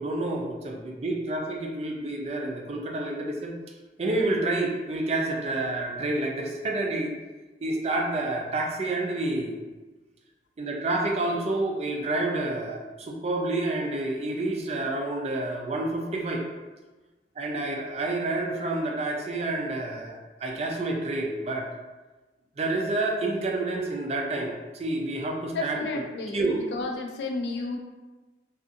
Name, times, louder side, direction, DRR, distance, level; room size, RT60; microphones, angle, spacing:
voice 1, 0.0-3.5 4.0-7.1 7.6-9.6 10.6-16.4 17.4-21.7 22.6-25.8 26.3-26.6, right 2 dB, 35° right, 1 dB, 0.3 m, -29 dB
voice 2, 25.5-27.8, left 3 dB, 80° left, 2 dB, 0.4 m, -32 dB
2.5 x 2.3 x 2.5 m, 1.2 s
head